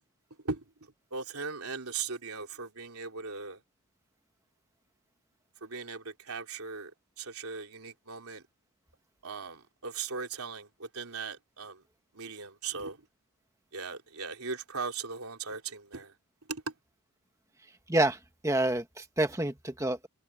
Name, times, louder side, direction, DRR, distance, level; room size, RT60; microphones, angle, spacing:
voice 1, 1.1-3.6 5.6-6.9 7.2-8.4 9.2-11.8 12.1-13.0 13.7-16.1 16.5-16.6, right 5 dB, 80° right, 3.4 m, -38 dB
voice 2, 18.4-20.1, right 1 dB, 15° right, 1.5 m, -28 dB
head